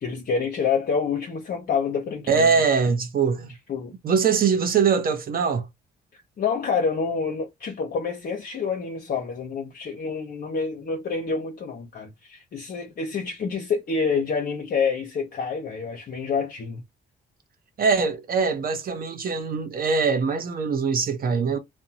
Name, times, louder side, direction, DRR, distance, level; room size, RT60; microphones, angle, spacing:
voice 1, 0.0-2.5 3.7-3.9 6.1-16.8, left 5 dB, 50° left, 0.8 m, -27 dB
voice 2, 2.3-3.5 4.0-5.7 17.8-21.6, right 5 dB, 45° right, 0.6 m, -22 dB
2.5 x 2.1 x 2.8 m
cardioid pair, 90°, 20 cm